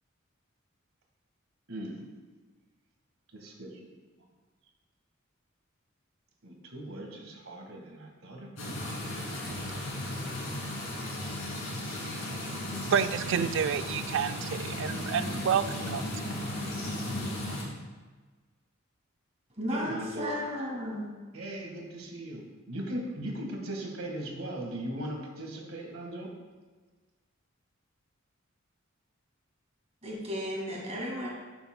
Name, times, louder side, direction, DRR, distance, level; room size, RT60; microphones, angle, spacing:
voice 1, 1.7-2.0 3.3-3.7 6.4-9.6 19.7-20.3 21.3-26.3, right 1 dB, 80° right, 1.6 m, -39 dB
sound 1, 8.6-17.6, left 1 dB, 90° left, 2.4 m, -35 dB
voice 2, 12.8-16.2 16.6-16.8, right 7 dB, 60° right, 0.3 m, -30 dB
voice 3, 19.6-21.1 30.0-31.3, equal, 30° right, 2.0 m, -34 dB
12.0 x 7.0 x 2.2 m
head